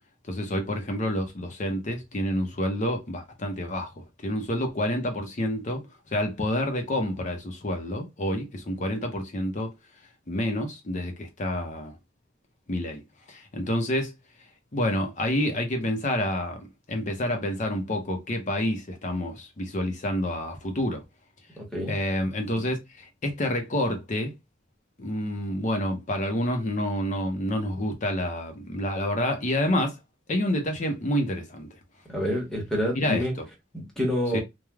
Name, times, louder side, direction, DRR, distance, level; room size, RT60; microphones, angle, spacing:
voice 1, 0.3-5.8 6.1-9.7 10.3-12.0 12.7-13.0 13.3-14.1 14.7-21.0 21.9-24.3 25.0-30.0 30.3-31.7 32.9-33.4 34.3-34.4, left 1 dB, 40° left, 0.7 m, -28 dB
voice 2, 21.6-21.9 32.1-33.3 33.7-34.4, equal, 5° left, 1.1 m, -27 dB
3.2 x 2.2 x 2.3 m
head